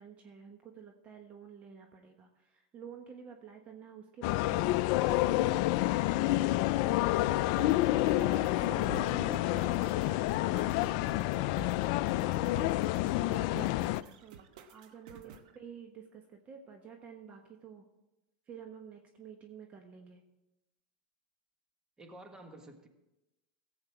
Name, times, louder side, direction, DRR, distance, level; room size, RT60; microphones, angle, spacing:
voice 1, 0.0-5.9 8.2-12.5 13.0-17.8 18.5-20.2, right 6 dB, 35° right, 3 dB, 1.3 m, -50 dB
sound 1, 4.2-14.0, left 16 dB, 60° left, 0.4 m, -29 dB
sound 2, 7.6-15.6, right 6 dB, 70° right, 1.1 m, -50 dB
voice 2, 8.1-8.6 9.2-9.5 13.0-13.1 15.2-15.4 22.0-22.9, right 2 dB, 15° right, 5 dB, 1.6 m, -52 dB
16.0 x 7.9 x 4.6 m, 0.98 s
hypercardioid pair, 115°, 4 cm